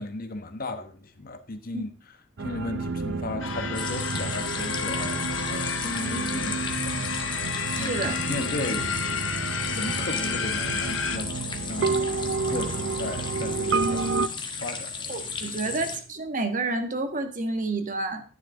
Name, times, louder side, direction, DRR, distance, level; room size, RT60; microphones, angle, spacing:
voice 1, 0.0-1.9 2.4-7.1 7.8-8.0 8.2-9.4 9.7-11.4 11.7-12.2 12.4-14.1 14.6-15.2 15.6-15.7, left 2 dB, 50° left, 1.1 m, -35 dB
sound 1, 2.4-14.3, right 4 dB, 65° right, 0.6 m, -30 dB
sound 2, 3.4-11.2, left 7 dB, 70° left, 1.1 m, -32 dB
sound 3, 3.7-16.0, left 5 dB, 25° left, 1.3 m, -35 dB
voice 2, 7.8-8.2 15.1-18.2, right 3 dB, 45° right, 1.4 m, -29 dB
12.0 x 9.8 x 3.8 m
head